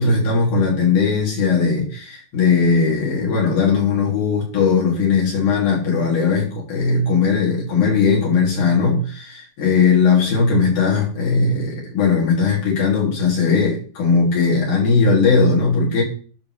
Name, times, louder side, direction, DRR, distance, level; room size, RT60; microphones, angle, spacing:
voice 1, 0.0-16.0, left 5 dB, 65° left, -4 dB, 3.9 m, -18 dB
12.0 x 4.0 x 3.2 m, 0.41 s
omnidirectional pair, 3.9 m